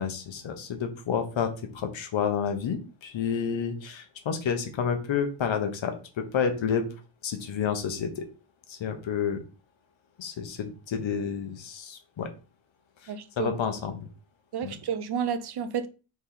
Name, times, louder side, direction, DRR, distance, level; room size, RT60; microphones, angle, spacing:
voice 1, 0.0-6.9 7.2-8.2 8.7-9.4 10.2-12.3 13.0-14.1 14.6-14.7, left 7 dB, 65° left, 1.3 m, -30 dB
voice 2, 13.1-13.6 14.5-15.9, right 7 dB, 55° right, 0.7 m, -31 dB
5.3 x 4.3 x 4.1 m
wide cardioid pair, 135°, 49 cm